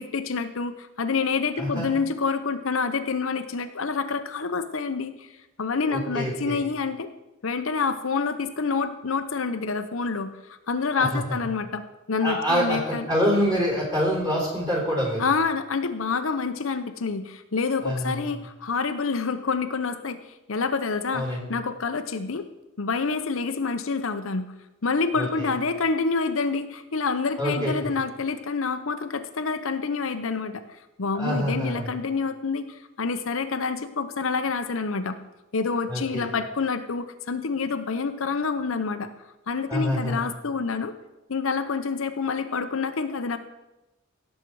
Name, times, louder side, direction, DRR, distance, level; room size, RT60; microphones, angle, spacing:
voice 1, 0.0-5.3 5.6-7.1 7.4-10.4 10.7-13.1 15.2-20.2 20.5-22.5 22.8-24.5 24.8-30.6 31.0-35.2 35.5-39.1 39.5-40.9 41.3-43.4, left 4 dB, 75° left, 8 dB, 0.8 m, -27 dB
voice 2, 1.6-1.9 5.8-6.6 11.0-11.4 12.2-15.3 17.8-18.3 21.1-21.5 25.1-25.5 27.4-27.7 31.1-31.9 35.9-36.3 39.7-40.3, equal, 20° right, -2 dB, 3.9 m, -26 dB
16.5 x 7.5 x 4.7 m, 0.98 s
head